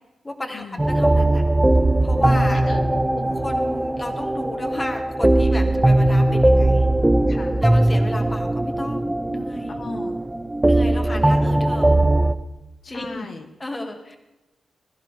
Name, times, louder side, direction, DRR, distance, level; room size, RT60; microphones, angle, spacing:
voice 1, 0.2-1.4 2.0-2.7 3.3-6.9 7.6-9.8 10.6-11.9 12.9-13.3 13.6-14.2, left 1 dB, 15° left, 3 dB, 2.1 m, -33 dB
sound 1, 0.8-12.3, right 1 dB, 10° right, 0.6 m, -19 dB
voice 2, 2.1-3.4 5.5-5.7 7.3-7.6 9.8-10.2 10.9-11.4 11.8-12.0 12.8-13.5, left 4 dB, 50° left, 3 dB, 1.3 m, -37 dB
22.0 x 14.0 x 3.6 m, 1.0 s
wide cardioid pair, 165°, 0 cm